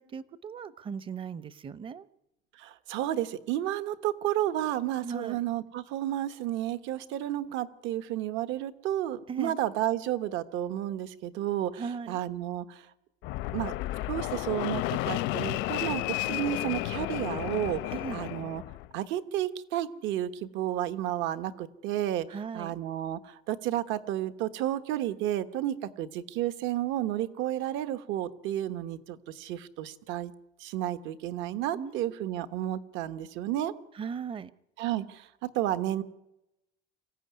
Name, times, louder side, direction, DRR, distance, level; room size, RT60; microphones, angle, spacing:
voice 1, 0.0-2.1 5.0-5.4 9.3-9.6 11.8-12.2 17.9-18.2 22.3-22.7 31.7-32.4 33.9-34.5, right 6 dB, 25° right, 16 dB, 0.7 m, -38 dB
voice 2, 2.6-11.8 12.1-12.9 13.5-13.7 14.1-16.0 16.3-18.6 18.9-22.3 22.5-30.3 30.6-33.7 34.8-36.0, right 12 dB, 70° right, 11 dB, 1.4 m, -32 dB
Fixed-wing aircraft airplane, 13.2-18.9, left 17 dB, 70° left, 0.7 m, -32 dB
25.0 x 15.0 x 9.7 m, 0.89 s
cardioid pair, 155°, 20 cm